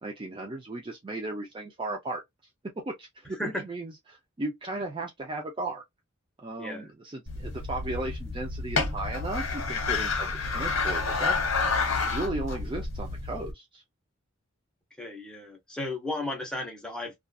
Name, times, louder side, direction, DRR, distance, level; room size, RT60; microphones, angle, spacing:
voice 1, 0.0-2.2 2.8-5.8 6.4-11.4 12.1-13.8, right 2 dB, 25° right, 0.4 m, -36 dB
voice 2, 6.6-6.9 15.0-17.1, left 1 dB, 5° left, 0.8 m, -34 dB
sound 1, 7.3-13.5, left 4 dB, 65° left, 1.0 m, -29 dB
2.4 x 2.4 x 2.3 m
head